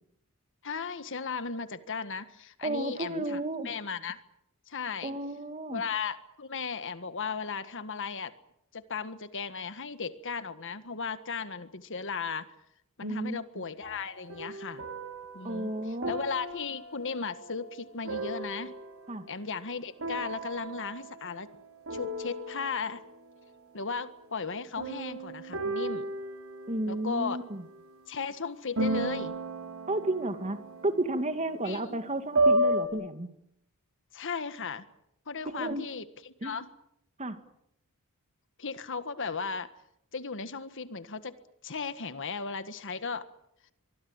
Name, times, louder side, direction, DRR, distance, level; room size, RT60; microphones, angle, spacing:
voice 1, 0.6-4.2 4.7-5.1 5.7-8.3 8.7-12.5 13.0-14.8 15.3-18.7 19.3-21.5 21.9-23.0 23.7-26.1 26.9-27.4 28.1-29.3 31.6-32.0 34.1-34.8 35.3-36.7 38.6-39.7 40.1-41.4 41.6-43.3, left 5 dB, 60° left, 12 dB, 1.6 m, -36 dB
voice 2, 2.6-3.8 5.0-5.8 13.0-13.6 15.4-16.1 19.1-19.3 26.7-27.6 29.9-33.3 35.5-35.9 36.4-36.6 37.2-37.4, right 1 dB, 30° right, 9 dB, 2.1 m, -32 dB
sound 1, 13.8-19.3 20.0-21.6 21.9-23.1 24.8-27.8 28.8-32.9, right 1 dB, 65° right, 5.1 m, -33 dB
24.5 x 23.0 x 8.9 m, 0.78 s
head